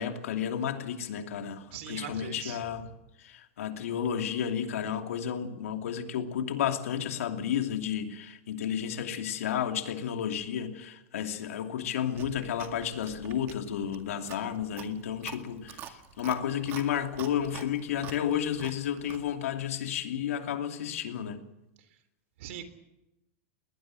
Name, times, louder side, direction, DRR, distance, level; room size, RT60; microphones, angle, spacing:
voice 1, 0.0-2.9 3.2-21.5, left 9 dB, 85° left, 2.7 m, -32 dB
voice 2, 1.7-2.6 22.4-22.6, right 10 dB, 60° right, 3.4 m, -40 dB
Chewing mastication, 12.1-19.3, right 10 dB, 30° right, 1.9 m, -47 dB
21.0 x 19.0 x 7.7 m
supercardioid pair, 160°, 7 cm